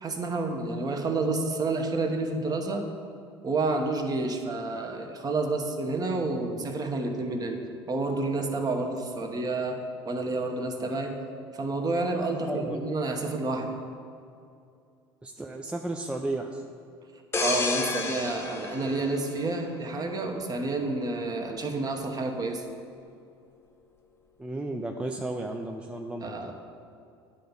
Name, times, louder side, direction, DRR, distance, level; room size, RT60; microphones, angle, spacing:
voice 1, 0.0-2.8 3.4-7.6 7.9-9.8 10.0-11.2 11.5-13.8 17.4-22.6 26.2-26.5, right 3 dB, 30° right, 4 dB, 1.0 m, -29 dB
voice 2, 12.3-12.9 15.2-16.6 24.4-26.5, right 2 dB, 10° right, 2 dB, 0.4 m, -34 dB
sound 1, 17.3-20.0 20.5-20.7, left 3 dB, 20° left, 0.9 m, -31 dB
10.0 x 3.4 x 5.4 m, 2.5 s
hypercardioid pair, 70°, 13 cm